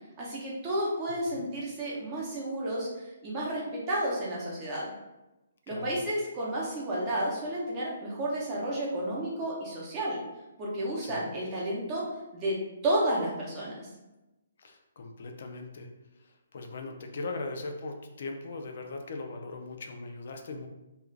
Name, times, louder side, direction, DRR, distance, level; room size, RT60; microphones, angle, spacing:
voice 1, 0.2-4.9 5.7-10.2 10.6-12.1 12.3-12.6 12.8-13.9, right 1 dB, 20° right, -5 dB, 0.7 m, -31 dB
voice 2, 1.1-1.5 5.7-6.0 11.0-11.3 14.6-15.9 16.1-20.7, left 3 dB, 60° left, 4 dB, 0.4 m, -40 dB
2.4 x 2.4 x 3.2 m, 1.0 s
hypercardioid pair, 165°, 0 cm